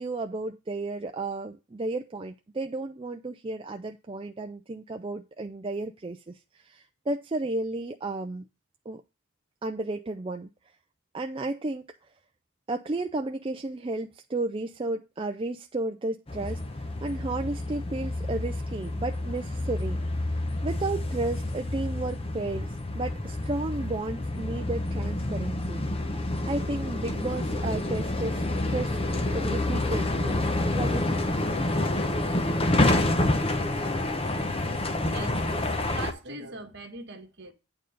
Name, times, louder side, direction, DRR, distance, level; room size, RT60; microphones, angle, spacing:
voice 1, 0.0-8.4 8.9-9.0 9.6-10.5 11.1-11.9 12.7-20.3 20.6-25.8 26.4-28.4 28.7-29.0 29.3-30.4 30.7-31.2, right 2 dB, 25° right, 0.4 m, -33 dB
sound 1, 16.3-36.1, left 1 dB, 25° left, 0.9 m, -28 dB
voice 2, 35.0-37.5, right 2 dB, 50° right, 1.7 m, -41 dB
8.9 x 3.9 x 6.5 m
head